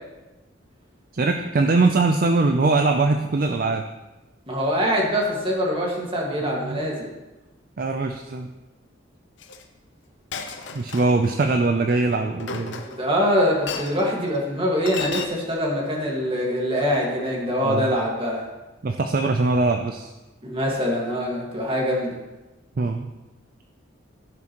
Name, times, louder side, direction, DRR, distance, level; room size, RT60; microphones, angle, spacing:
voice 1, 1.1-3.8 6.4-6.9 7.8-8.5 10.7-12.8 17.6-17.9 18.8-20.1 22.8-23.1, right 3 dB, 45° right, 5 dB, 0.4 m, -22 dB
voice 2, 4.5-7.1 12.8-18.4 20.4-22.2, equal, 25° right, -2 dB, 1.8 m, -24 dB
Chink clink, 9.4-9.6 10.3-11.3 12.4-13.2 13.7-14.0 14.9-15.3, left 5 dB, 65° left, 0.7 m, -33 dB
15.0 x 6.0 x 3.0 m, 1.1 s
head